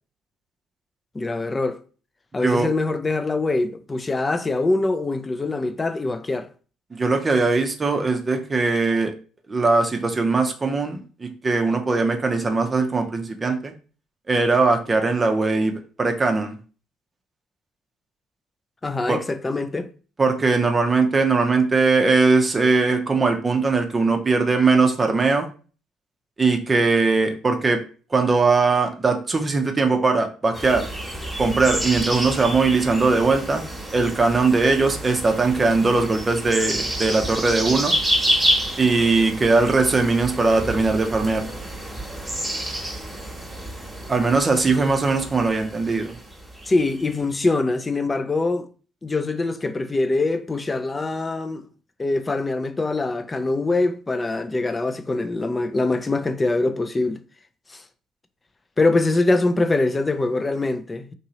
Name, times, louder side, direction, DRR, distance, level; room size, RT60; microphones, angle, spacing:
voice 1, 1.1-1.8 2.3-6.5 18.8-19.9 46.7-48.7 49.0-51.6 52.0-57.2 57.7-57.8 58.8-61.1, left 2 dB, 25° left, 0.4 m, -23 dB
voice 2, 6.9-9.1 9.5-13.7 14.3-15.7 16.0-16.6 19.1-19.2 20.2-25.5 26.4-27.8 28.1-30.9 31.4-33.6 33.9-37.9 38.8-41.5 44.1-46.1, right 3 dB, 30° right, 0.6 m, -20 dB
sound 1, 30.5-47.3, right 1 dB, 10° right, 1.1 m, -29 dB
3.0 x 2.7 x 2.8 m
hypercardioid pair, 55°, 0 cm